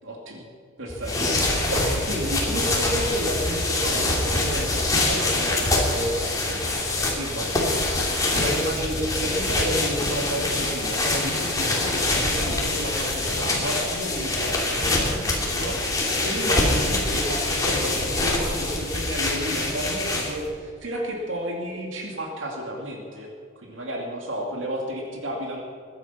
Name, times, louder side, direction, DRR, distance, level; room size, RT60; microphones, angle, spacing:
voice 1, 0.0-0.5 0.8-25.6, right 1 dB, 70° right, 0 dB, 2.5 m, -32 dB
sound 1, 0.9-20.5, left 2 dB, 20° left, 3.0 m, -25 dB
21.5 x 10.5 x 5.8 m, 2.2 s
head